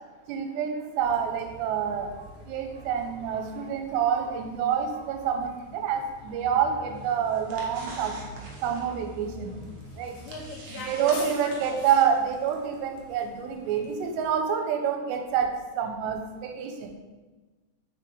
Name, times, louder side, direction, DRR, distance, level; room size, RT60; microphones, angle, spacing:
voice 1, 0.3-8.3 8.6-10.2 10.9-16.9, right 7 dB, 85° right, 4 dB, 2.8 m, -28 dB
Bus, 1.0-14.3, left 2 dB, 65° left, 2.6 m, -47 dB
sound 1, 6.9-12.5, right 2 dB, 70° right, 1.9 m, -46 dB
voice 2, 10.2-11.8, left 3 dB, 85° left, 2 dB, 2.8 m, -42 dB
6.8 x 6.0 x 3.7 m, 1.2 s
omnidirectional pair, 5.0 m